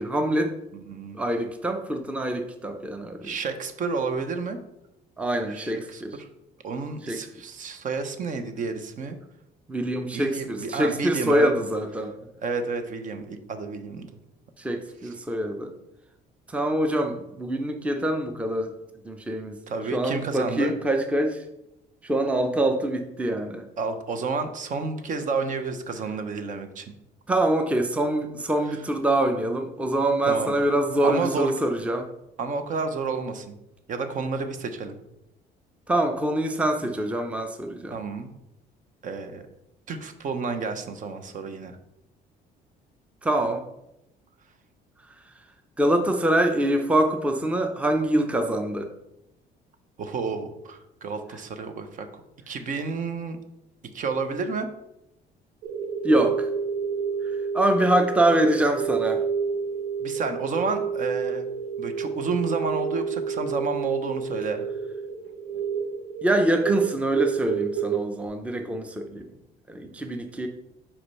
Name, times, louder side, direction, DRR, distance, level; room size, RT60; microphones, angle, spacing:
voice 1, 0.0-0.5 1.1-3.3 5.2-6.2 7.0-7.2 9.7-12.2 14.6-15.7 16.5-18.7 19.0-19.6 19.9-21.4 22.0-23.7 27.3-32.1 35.9-38.0 43.2-43.6 45.8-48.9 56.0-56.5 57.5-59.2 66.2-69.3 69.7-70.5, right 1 dB, 5° right, 5 dB, 0.6 m, -24 dB
voice 2, 0.7-1.2 3.2-4.6 5.5-6.3 6.6-9.2 10.1-11.5 12.4-14.1 19.7-20.7 23.8-26.8 28.7-28.8 30.3-30.5 31.0-31.5 32.4-33.5 33.9-35.0 37.9-38.3 39.0-39.5 39.9-41.8 50.0-52.1 52.5-53.4 53.9-54.7 60.0-61.5 61.8-64.6, right 4 dB, 50° right, 8 dB, 0.8 m, -30 dB
sound 1, 55.6-68.0, right 6 dB, 85° right, 0.8 m, -29 dB
4.9 x 4.3 x 5.5 m, 0.86 s
cardioid pair, 110°, 17 cm